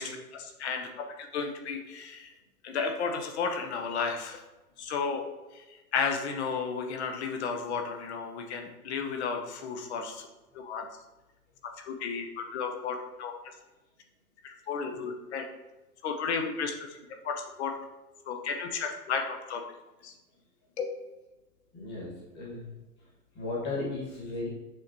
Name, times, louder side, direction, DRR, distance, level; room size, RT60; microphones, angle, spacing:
voice 1, 0.0-2.3 2.6-4.4 4.8-5.2 5.5-10.3 10.5-10.9 11.8-13.3 14.4-15.5 16.0-17.0 17.2-17.7 18.3-19.6 20.0-20.1 20.8-20.9, left 5 dB, 45° left, 5 dB, 0.7 m, -33 dB
voice 2, 21.7-22.7 23.3-24.5, left 2 dB, 20° left, -3 dB, 1.5 m, -35 dB
6.3 x 3.0 x 2.7 m, 1.1 s
hypercardioid pair, 130°, 47 cm